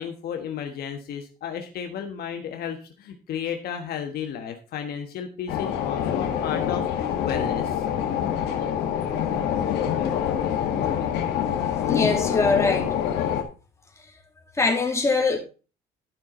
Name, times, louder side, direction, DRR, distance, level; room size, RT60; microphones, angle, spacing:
voice 1, 0.0-7.8, left 8 dB, 65° left, 1.4 m, -33 dB
sound 1, 5.5-13.4, left 9 dB, 85° left, 1.7 m, -25 dB
voice 2, 11.8-12.9 14.6-15.4, left 3 dB, 15° left, 2.5 m, -22 dB
12.0 x 5.8 x 3.8 m
cardioid pair, 110°, 17 cm